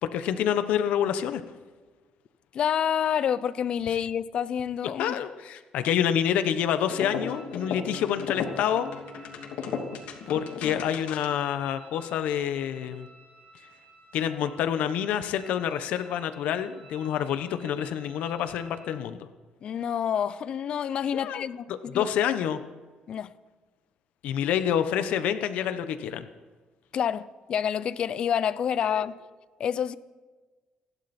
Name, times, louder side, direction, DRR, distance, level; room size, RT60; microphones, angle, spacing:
voice 1, 0.0-1.4 5.0-8.9 10.3-13.1 14.1-19.3 21.1-21.4 21.7-22.6 24.2-26.2 28.8-29.1, left 9 dB, 70° left, 1.2 m, -27 dB
voice 2, 2.5-5.2 19.6-21.7 21.9-22.1 23.1-23.3 26.9-29.1 29.6-30.0, left 8 dB, 40° left, 0.6 m, -28 dB
sound 1, 6.9-11.5, left 6 dB, 85° left, 2.8 m, -35 dB
sound 2, 6.9-19.0, right 2 dB, 50° right, 5.1 m, -53 dB
28.5 x 11.5 x 4.4 m
cardioid pair, 175°, 2 cm